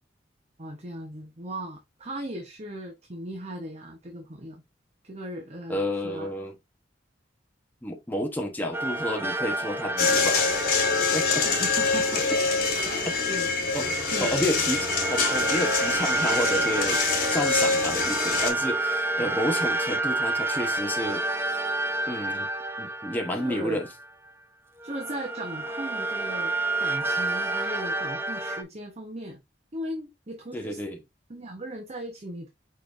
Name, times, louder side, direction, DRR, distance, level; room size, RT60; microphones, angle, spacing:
voice 1, 0.6-4.6 5.0-6.3 11.4-12.3 12.7-13.7 14.0-14.6 19.2-19.3 23.3-23.8 24.8-26.5 26.8-29.4 29.7-30.8 31.3-32.5, right 1 dB, 35° right, 0.9 m, -37 dB
voice 2, 5.7-6.5 7.8-10.5 11.1-11.4 13.7-13.9 14.2-17.0 17.3-21.3 22.1-22.5 22.8-23.9 30.5-31.0, left 1 dB, 10° left, 0.8 m, -30 dB
sound 1, 8.7-12.9 13.8-24.3 24.8-28.6, right 2 dB, 15° right, 0.4 m, -30 dB
sound 2, 10.0-18.5, left 4 dB, 50° left, 1.9 m, -25 dB
5.2 x 4.1 x 2.4 m
head